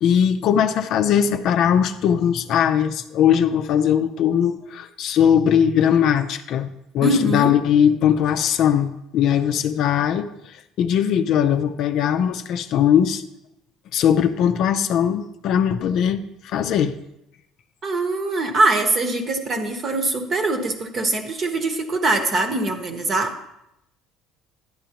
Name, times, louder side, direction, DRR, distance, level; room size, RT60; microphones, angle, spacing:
voice 1, 0.0-13.2 13.9-17.0, left 9 dB, 55° left, 8 dB, 0.5 m, -20 dB
voice 2, 7.0-7.5 17.8-23.4, right 2 dB, 30° right, 6 dB, 1.0 m, -22 dB
11.0 x 10.0 x 2.9 m, 0.84 s
cardioid pair, 150°, 0 cm